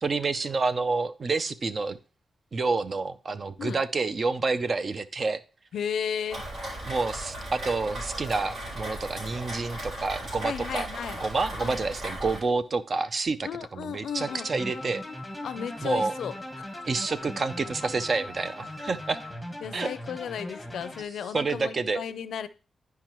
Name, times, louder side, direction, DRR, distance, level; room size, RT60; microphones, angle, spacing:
voice 1, 0.0-2.0 2.5-5.4 6.9-10.9 11.2-15.0 15.8-16.1 16.9-19.2 19.7-19.9 21.3-22.0, right 3 dB, 40° right, 0.5 m, -28 dB
voice 2, 5.7-6.5 10.4-11.2 11.6-11.8 13.4-14.5 15.4-16.8 19.6-22.5, left 8 dB, 90° left, 0.4 m, -34 dB
Rain, 6.3-12.4, right 1 dB, 70° right, 4.0 m, -37 dB
Wind instrument woodwind instrument, 14.1-19.4, left 2 dB, 25° right, 2.4 m, -45 dB
sound 1, 14.2-21.0, left 1 dB, ahead, 1.3 m, -40 dB
10.5 x 4.7 x 3.0 m
wide cardioid pair, 125°, 0 cm